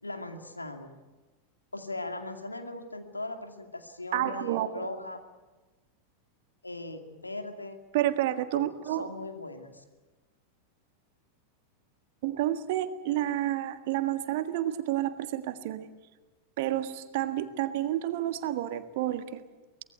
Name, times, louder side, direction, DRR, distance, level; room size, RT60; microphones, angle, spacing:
voice 1, 0.0-1.0 1.7-5.2 6.6-7.8 8.5-8.6 9.0-9.8, left 2 dB, 80° left, 5 dB, 2.4 m, -39 dB
voice 2, 4.1-4.9 7.9-9.1 12.2-15.9 16.6-19.4, right 13 dB, 50° right, 9 dB, 1.6 m, -30 dB
24.0 x 19.5 x 8.2 m, 1.2 s
figure-of-eight pair, 90°, 0 cm